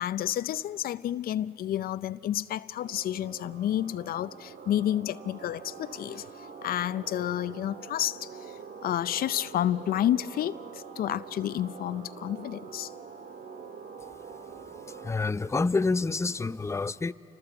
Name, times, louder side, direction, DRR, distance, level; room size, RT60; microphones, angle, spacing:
voice 1, 0.0-12.9, left 12 dB, 65° left, 15 dB, 0.5 m, -30 dB
sound 1, 2.8-15.1, right 6 dB, 60° right, 1.9 m, -45 dB
voice 2, 15.0-17.1, left 3 dB, 15° left, 13 dB, 0.6 m, -27 dB
29.0 x 25.0 x 7.9 m, 2.8 s
supercardioid pair, 65°, 16 cm